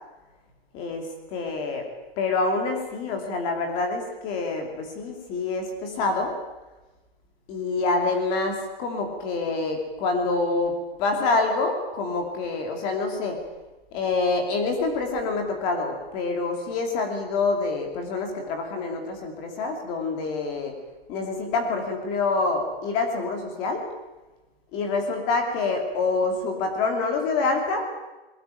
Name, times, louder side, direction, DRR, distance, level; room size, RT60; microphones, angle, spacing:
voice 1, 0.7-1.9 2.2-6.3 7.5-13.4 13.9-20.7 21.1-23.8 24.7-27.9, left 3 dB, 15° left, 3 dB, 2.7 m, -26 dB
22.0 x 19.5 x 9.1 m, 1.1 s
hypercardioid pair, 180°, 31 cm